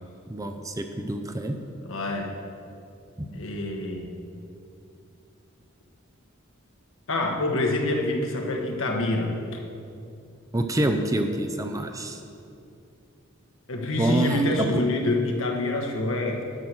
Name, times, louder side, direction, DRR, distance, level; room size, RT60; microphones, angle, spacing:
voice 1, 0.3-1.6 3.2-3.3 10.5-12.2 14.0-14.8, right 1 dB, 15° right, 6 dB, 0.5 m, -26 dB
voice 2, 1.8-2.4 3.3-4.2 7.1-9.4 13.7-16.4, left 2 dB, 70° left, 1 dB, 1.3 m, -26 dB
10.5 x 6.4 x 6.1 m, 2.6 s
head